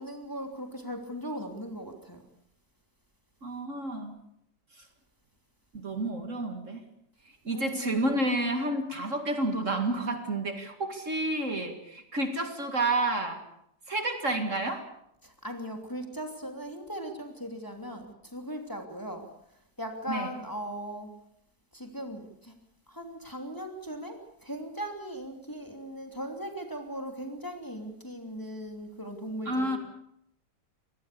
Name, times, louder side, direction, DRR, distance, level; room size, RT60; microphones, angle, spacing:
voice 1, 0.0-2.2 7.5-8.2 15.2-19.3 19.8-21.1 21.7-22.5 22.9-29.8, equal, 10° left, 4 dB, 3.0 m, -38 dB
voice 2, 3.4-4.1 4.8-4.9 5.7-6.8 7.4-13.4 13.9-14.9 20.1-20.3 29.5-29.8, right 2 dB, 45° right, 6 dB, 2.5 m, -30 dB
25.5 x 19.5 x 6.9 m, 0.74 s
omnidirectional pair, 1.8 m